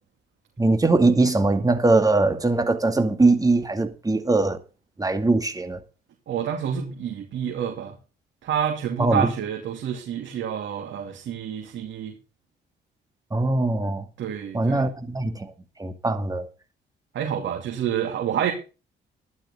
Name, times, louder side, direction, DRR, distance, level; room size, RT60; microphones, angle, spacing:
voice 1, 0.6-4.6 5.0-5.8 9.0-9.3 13.3-14.1 14.5-15.5 15.8-16.5, right 2 dB, 20° right, 2.3 m, -21 dB
voice 2, 6.3-8.0 8.4-12.1 14.2-14.8 17.1-18.5, right 8 dB, 70° right, 2.7 m, -28 dB
14.0 x 11.5 x 3.8 m
cardioid pair, 90°, 20 cm